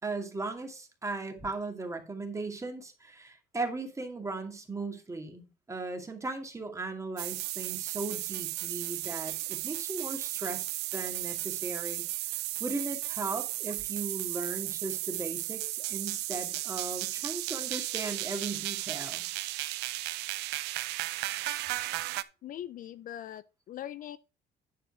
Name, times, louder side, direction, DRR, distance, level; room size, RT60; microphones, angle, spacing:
voice 1, 0.0-12.0 12.6-19.3, right 3 dB, 15° right, 2.1 m, -37 dB
sound 1, 7.2-22.2, right 18 dB, 90° right, 0.5 m, -35 dB
voice 2, 22.4-24.2, left 11 dB, 55° left, 0.5 m, -41 dB
10.0 x 4.4 x 5.9 m
cardioid pair, 110°, 17 cm